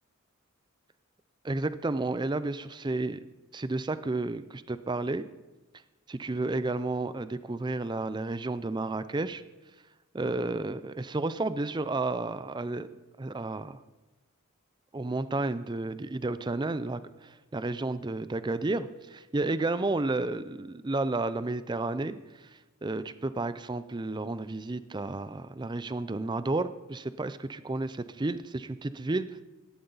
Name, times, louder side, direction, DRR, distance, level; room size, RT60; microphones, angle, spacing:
voice 1, 1.4-3.2 3.5-5.2 6.1-9.4 10.1-12.9 13.2-13.8 14.9-22.5 22.8-29.4, right 2 dB, 20° right, 13 dB, 0.4 m, -32 dB
17.5 x 13.0 x 4.0 m, 1.2 s
head